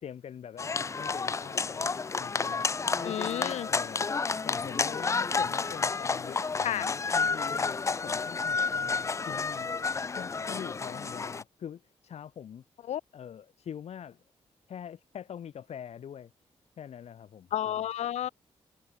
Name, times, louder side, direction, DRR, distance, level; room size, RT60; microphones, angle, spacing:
voice 1, 0.0-1.9 2.2-2.7 3.0-3.2 3.6-4.1 4.4-9.7 10.1-12.6 13.1-14.2 14.7-16.3 16.8-17.9, left 8 dB, 75° left, 2.3 m, -44 dB
sound 1, 0.6-11.4, left 4 dB, 25° left, 0.4 m, -30 dB
voice 2, 3.0-3.7 6.6-6.9 12.9-13.0 17.5-18.3, left 11 dB, 90° left, 0.5 m, -31 dB
wide cardioid pair, 115°, 11 cm